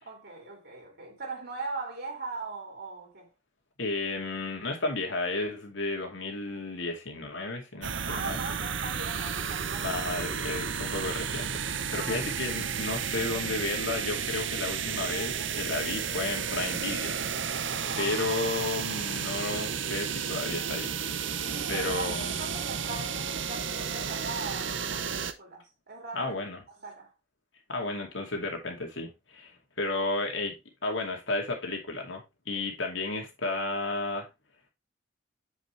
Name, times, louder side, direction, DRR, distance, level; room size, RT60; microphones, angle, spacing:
voice 1, 0.0-3.3 8.1-10.0 11.8-12.2 17.9-18.1 21.5-26.3 26.8-27.1, right 3 dB, 60° right, 2.7 m, -40 dB
voice 2, 3.8-8.4 9.8-17.2 18.0-20.9 21.7-22.4 26.1-26.6 27.7-30.6 30.8-34.3, left 2 dB, 90° left, 2.5 m, -33 dB
sound 1, 7.8-25.3, right 7 dB, 90° right, 0.8 m, -32 dB
8.1 x 5.2 x 3.2 m
head